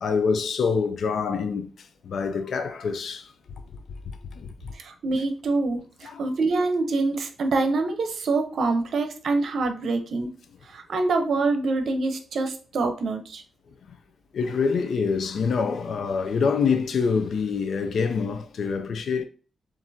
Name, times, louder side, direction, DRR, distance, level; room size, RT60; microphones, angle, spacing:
voice 1, 0.0-1.7 2.0-3.2 4.4-4.5 6.0-6.2 14.3-19.2, left 5 dB, 70° left, 0.4 m, -25 dB
voice 2, 4.7-10.3 10.7-13.4, right 3 dB, 70° right, 0.7 m, -25 dB
7.2 x 2.5 x 2.7 m
wide cardioid pair, 140°, 0 cm